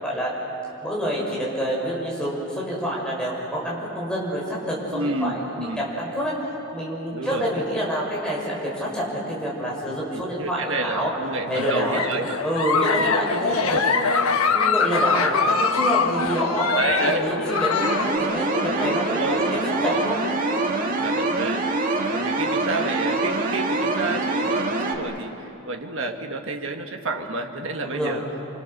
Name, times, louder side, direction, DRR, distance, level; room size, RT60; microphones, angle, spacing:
voice 1, 0.0-0.3 0.8-6.3 6.7-11.1 11.5-12.0 12.4-14.2 14.5-20.2 27.8-28.2, equal, 5° left, -5 dB, 6.4 m, -27 dB
voice 2, 4.9-5.9 7.1-7.5 10.1-12.4 12.9-13.1 13.7-13.9 16.7-17.3 18.5-19.5 19.8-20.1 20.8-21.7 22.1-28.3, right 2 dB, 65° right, 4 dB, 1.8 m, -30 dB
Giggle, 11.5-18.2, left 5 dB, 85° left, 1.2 m, -23 dB
sound 1, 17.8-25.0, right 2 dB, 40° right, 2.0 m, -25 dB
29.0 x 25.0 x 6.8 m, 3.0 s
head